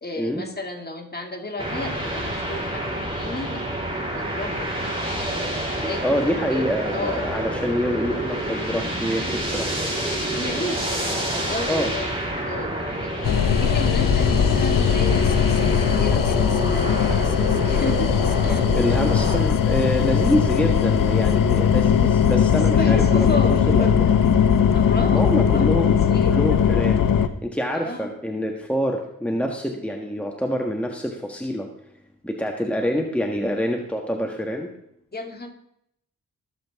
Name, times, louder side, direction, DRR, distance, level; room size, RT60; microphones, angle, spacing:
voice 1, 0.0-3.7 4.1-4.9 5.7-7.3 10.0-12.1 12.5-19.0 22.5-24.1 24.7-25.8 26.1-26.4 27.7-28.2 28.4-28.5 35.1-35.5, left 2 dB, 30° left, 2 dB, 2.5 m, -32 dB
sound 1, 1.6-19.4, right 1 dB, 15° right, 4.9 m, -28 dB
voice 2, 6.0-9.7 11.7-11.9 18.7-23.1 23.7-24.0 25.1-27.0 27.4-31.7 32.2-34.7, equal, 5° left, 2 dB, 1.6 m, -26 dB
sound 2, 13.2-27.3, left 7 dB, 75° left, 0.9 m, -19 dB
19.5 x 7.8 x 3.7 m, 0.75 s
cardioid pair, 60°, 33 cm